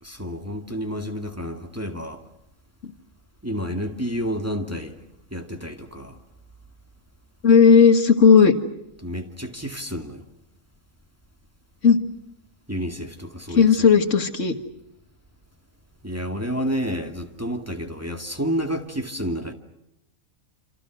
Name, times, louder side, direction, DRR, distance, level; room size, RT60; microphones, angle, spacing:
voice 1, 0.0-2.2 3.4-5.0 5.3-6.2 9.0-10.2 12.7-13.9 16.0-19.5, equal, 10° right, 2.2 m, -30 dB
voice 2, 7.4-8.5 11.8-12.0 13.6-14.5, left 6 dB, 60° left, 2.1 m, -14 dB
28.5 x 28.0 x 6.3 m
omnidirectional pair, 1.4 m